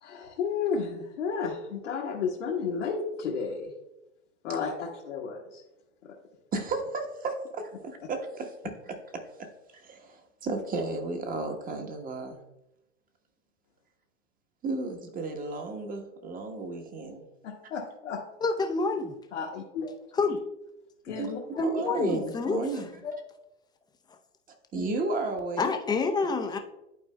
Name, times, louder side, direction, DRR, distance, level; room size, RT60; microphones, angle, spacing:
voice 1, 0.0-3.7 4.4-5.6 17.4-18.2 19.3-19.9 21.0-21.6 22.5-22.6 23.0-23.1 24.7-24.9, left 5 dB, 75° left, -3 dB, 1.4 m, -33 dB
voice 2, 6.5-9.5 9.7-12.4 14.6-17.3 21.2-21.3 21.6-22.8 24.7-25.7 26.4-26.5, right 3 dB, 25° right, 4 dB, 1.1 m, -34 dB
voice 3, 18.4-19.2 20.1-20.4 21.6-22.8 25.6-26.6, left 3 dB, 10° left, 5 dB, 0.5 m, -27 dB
11.5 x 4.4 x 2.2 m, 0.91 s
hypercardioid pair, 105°, 37 cm